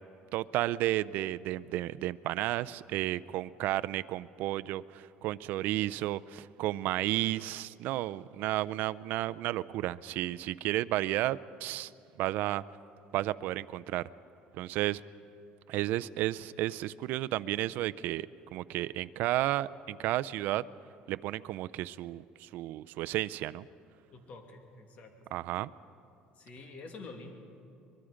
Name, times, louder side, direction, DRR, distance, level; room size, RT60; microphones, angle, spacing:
voice 1, 0.3-11.9 12.2-12.6 13.1-14.0 14.6-15.0 15.7-20.6 21.1-23.7 25.3-25.7, right 15 dB, 65° right, 15 dB, 0.4 m, -32 dB
voice 2, 24.1-25.1 26.4-27.4, left 3 dB, 45° left, 4 dB, 2.4 m, -47 dB
24.0 x 21.5 x 5.1 m, 2.7 s
cardioid pair, 135°, 3 cm